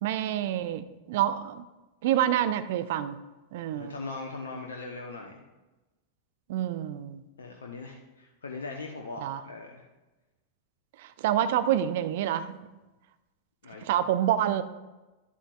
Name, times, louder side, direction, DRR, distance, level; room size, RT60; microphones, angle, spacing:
voice 1, 0.0-1.6 2.0-3.2 3.5-3.9 6.5-7.2 9.2-9.4 11.0-12.7 13.8-14.6, right 11 dB, 55° right, 12 dB, 0.6 m, -27 dB
voice 2, 3.7-5.4 7.4-9.9 13.6-13.9, left 3 dB, 65° left, 2 dB, 0.9 m, -40 dB
12.0 x 11.0 x 2.4 m, 1.1 s
figure-of-eight pair, 90°, 0 cm